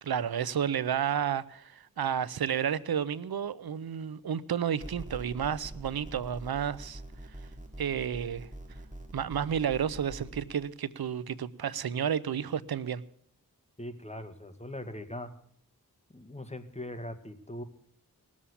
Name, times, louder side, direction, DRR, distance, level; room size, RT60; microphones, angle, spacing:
voice 1, 0.0-7.0 7.8-8.5 9.1-13.0, right 8 dB, 90° right, 0.7 m, -31 dB
sound 1, 4.8-10.4, right 1 dB, 20° right, 2.8 m, -44 dB
voice 2, 13.8-15.3 16.1-17.6, left 1 dB, 20° left, 1.8 m, -40 dB
18.5 x 7.4 x 8.4 m
cardioid pair, 50°, 36 cm